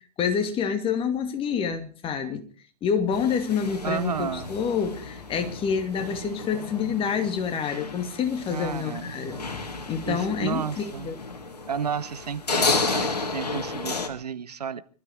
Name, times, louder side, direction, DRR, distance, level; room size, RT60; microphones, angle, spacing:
voice 1, 0.2-2.4 2.8-9.4 9.9-11.2, left 7 dB, 25° left, 2.4 m, -27 dB
sound 1, 3.1-14.1, left 3 dB, 75° left, 2.0 m, -32 dB
voice 2, 3.8-4.5 8.5-9.1 10.1-11.1 11.7-14.8, right 7 dB, 75° right, 0.9 m, -32 dB
24.0 x 13.0 x 4.6 m
figure-of-eight pair, 95°, 21 cm